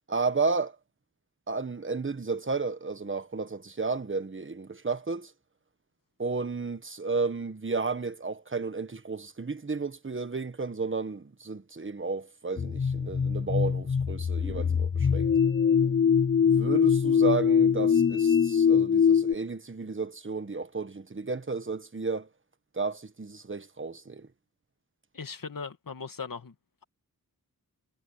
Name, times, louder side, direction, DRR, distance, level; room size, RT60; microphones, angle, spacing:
voice 1, 0.1-0.8 1.5-5.3 6.2-15.3 16.4-22.3 22.7-24.3, right 4 dB, 35° right, 1.4 m, -32 dB
sound 1, 12.6-19.3, left 7 dB, 35° left, 0.5 m, -23 dB
voice 2, 25.1-26.5, left 5 dB, 60° left, 2.1 m, -38 dB
wide cardioid pair, 80°, 37 cm